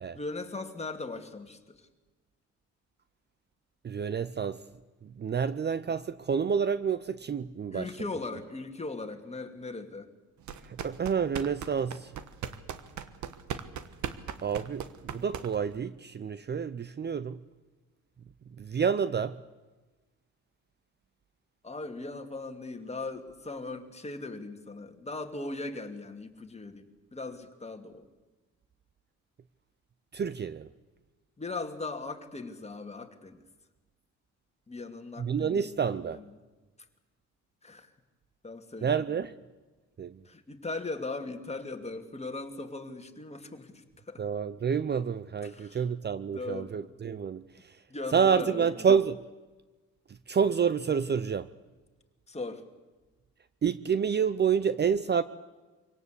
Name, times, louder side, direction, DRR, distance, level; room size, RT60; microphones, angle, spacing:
voice 1, 0.1-1.9 7.7-10.1 21.6-28.0 31.4-33.4 34.7-36.2 37.6-37.9 38.4-38.9 40.2-44.2 45.4-45.9 46.3-46.7 47.9-48.8 52.3-52.6, left 3 dB, 20° left, 5 dB, 2.5 m, -39 dB
voice 2, 3.8-4.6 5.0-7.9 10.6-12.1 14.4-17.4 18.6-19.4 30.1-30.7 35.2-36.2 38.8-39.3 40.0-40.2 44.2-47.8 48.1-49.3 50.3-51.5 53.6-55.2, right 6 dB, 35° right, 15 dB, 0.7 m, -28 dB
sound 1, 10.4-15.8, right 8 dB, 70° right, 1.4 m, -39 dB
25.0 x 18.0 x 8.3 m, 1.2 s
cardioid pair, 90°, 30 cm